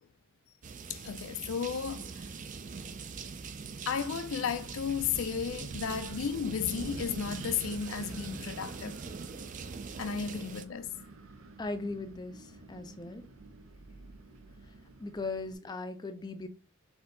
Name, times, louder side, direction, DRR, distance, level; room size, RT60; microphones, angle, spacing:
sound 1, 0.6-10.7, right 5 dB, 40° right, 0.4 m, -42 dB
voice 1, 0.9-2.2 3.9-9.0 10.0-11.0, left 7 dB, 80° left, 0.4 m, -34 dB
Wind, 4.5-15.5, right 3 dB, 90° right, 0.7 m, -51 dB
voice 2, 11.6-13.2 15.0-16.5, left 3 dB, 20° left, 0.4 m, -38 dB
4.3 x 2.7 x 3.9 m
head